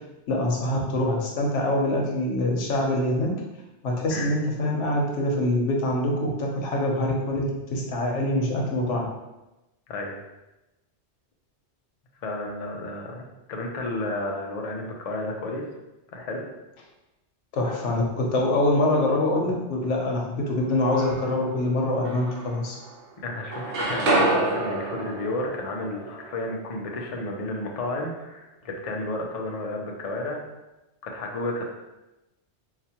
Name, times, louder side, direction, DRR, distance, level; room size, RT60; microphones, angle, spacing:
voice 1, 0.3-3.3 3.8-9.0 17.5-22.7, left 1 dB, 90° left, 0 dB, 1.1 m, -24 dB
voice 2, 12.2-15.6 16.1-16.4 23.2-30.4 31.0-31.7, left 2 dB, 45° left, 0 dB, 0.5 m, -32 dB
sound 1, 20.6-21.5 22.0-23.1 23.3-27.3, right 2 dB, 80° right, 1.1 m, -28 dB
4.7 x 2.2 x 2.8 m, 0.99 s
omnidirectional pair, 1.2 m